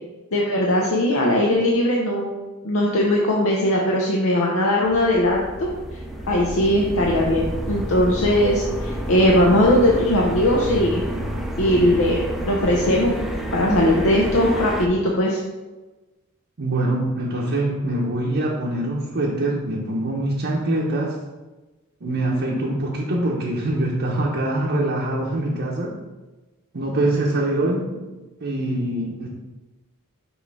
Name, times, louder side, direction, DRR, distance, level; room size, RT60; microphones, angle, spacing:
voice 1, 0.3-2.3 2.6-5.7 6.3-11.0 11.6-13.2 13.5-15.4, left 1 dB, 65° left, -2 dB, 0.7 m, -19 dB
sound 1, 4.8-14.9, right 1 dB, ahead, 0.5 m, -29 dB
voice 2, 16.6-21.2 22.0-25.9 26.7-27.9 28.4-29.3, right 1 dB, 50° right, -4 dB, 0.8 m, -24 dB
6.3 x 3.2 x 4.7 m, 1.2 s
head